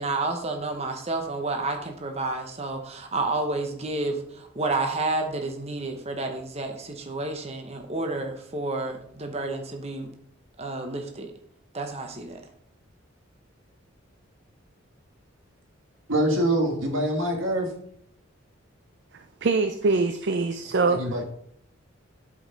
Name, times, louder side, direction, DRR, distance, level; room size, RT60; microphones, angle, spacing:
voice 1, 0.0-10.1 10.6-11.3 11.7-12.4, right 2 dB, 30° right, 0.9 m, -30 dB
voice 2, 16.1-17.7 20.8-21.2, right 1 dB, 85° right, 1.7 m, -24 dB
voice 3, 19.1-21.0, right 3 dB, 60° right, 0.5 m, -24 dB
11.5 x 5.1 x 4.1 m
head